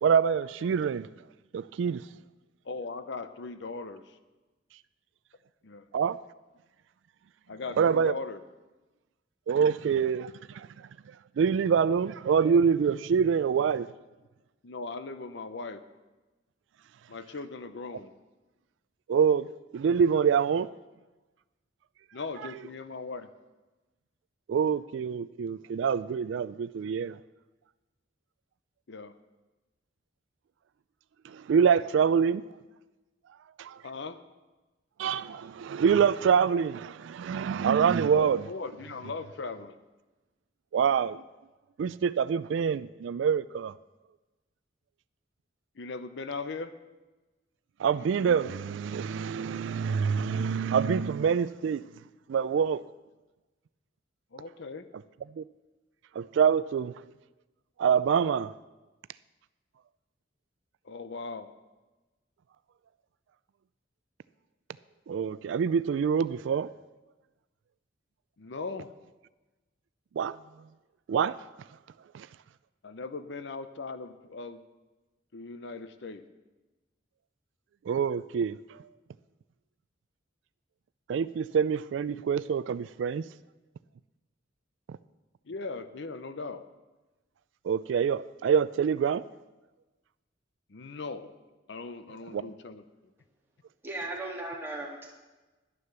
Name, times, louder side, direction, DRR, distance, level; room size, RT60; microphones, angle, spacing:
voice 1, 0.0-1.1 1.5-2.0 5.9-6.2 7.8-8.1 9.5-10.9 11.4-13.9 19.1-19.5 19.7-20.7 24.5-27.2 31.2-32.4 33.6-33.8 35.0-38.4 40.7-41.2 41.8-43.7 47.8-51.8 52.3-52.8 55.4-55.5 56.2-57.0 57.8-58.5 65.1-66.7 70.2-70.4 71.1-71.4 72.1-72.3 77.9-78.8 81.1-83.2 84.9-85.0 87.6-89.2 92.3-92.4, right 7 dB, 75° right, 0.3 m, -26 dB
voice 2, 2.6-4.2 5.6-5.9 7.5-8.4 14.6-15.8 17.1-18.1 22.1-23.3 28.9-29.2 33.8-34.2 38.1-39.8 45.7-46.8 54.3-54.9 60.8-61.5 68.4-68.9 72.8-74.6 75.3-76.2 85.4-86.7 90.7-91.3 91.7-93.1, left 4 dB, 70° left, 0.7 m, -39 dB
voice 3, 93.8-95.1, right 2 dB, 10° right, 2.6 m, -36 dB
11.0 x 9.8 x 6.7 m
head